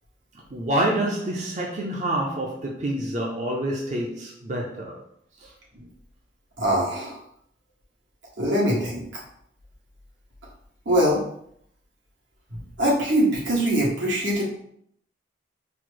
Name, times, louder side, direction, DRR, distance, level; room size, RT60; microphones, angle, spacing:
voice 1, 0.5-5.0, right 1 dB, 40° right, -2 dB, 0.5 m, -27 dB
voice 2, 6.6-7.2 8.4-9.0 10.8-11.2 12.8-14.5, equal, 85° right, -5 dB, 1.6 m, -22 dB
4.3 x 2.0 x 4.6 m, 0.69 s
head